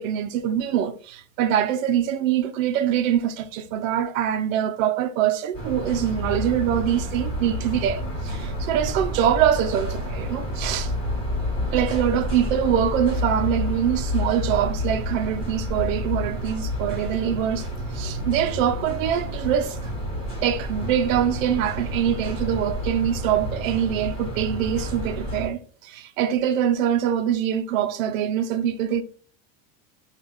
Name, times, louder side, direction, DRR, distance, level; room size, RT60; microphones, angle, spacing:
voice 1, 0.0-10.9 11.7-19.8 20.4-29.0, right 9 dB, 85° right, 0.6 m, -24 dB
sound 1, 5.5-25.5, left 1 dB, 15° left, 1.2 m, -29 dB
3.4 x 2.4 x 3.2 m
supercardioid pair, 155°, 39 cm